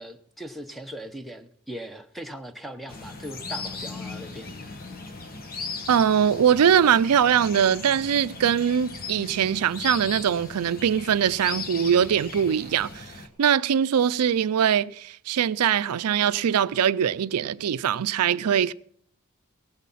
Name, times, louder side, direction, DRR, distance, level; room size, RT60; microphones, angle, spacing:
voice 1, 0.0-4.8, equal, ahead, 0.8 m, -39 dB
sound 1, 2.9-13.3, left 4 dB, 40° left, 1.4 m, -38 dB
voice 2, 5.9-13.1 13.4-18.7, right 8 dB, 90° right, 0.4 m, -22 dB
18.0 x 8.4 x 5.6 m
head